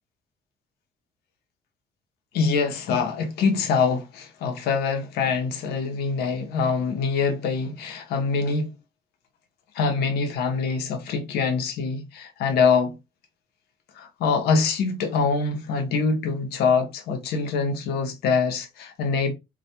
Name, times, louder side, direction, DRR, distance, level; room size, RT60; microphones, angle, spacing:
voice 1, 2.3-8.7 9.7-13.0 14.0-19.3, left 5 dB, 70° left, 0.6 m, -24 dB
2.2 x 2.2 x 2.7 m
cardioid pair, 110°, 17 cm